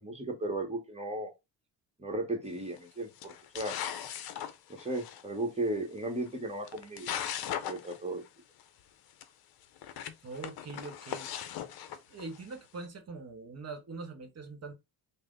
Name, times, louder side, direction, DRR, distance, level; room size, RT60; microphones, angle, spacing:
voice 1, 0.0-1.3 2.0-3.8 4.7-7.1 7.5-8.2, right 1 dB, 15° right, 1.1 m, -35 dB
sound 1, 2.5-2.8 3.2-5.2 6.3-6.4 6.6-8.0 8.3-8.4 8.6-8.7 9.2-9.3 9.8-12.5, left 9 dB, 60° left, 0.6 m, -38 dB
voice 2, 10.2-11.3 12.1-14.7, right 3 dB, 35° right, 1.1 m, -43 dB
3.3 x 2.1 x 3.8 m
supercardioid pair, 80°, 41 cm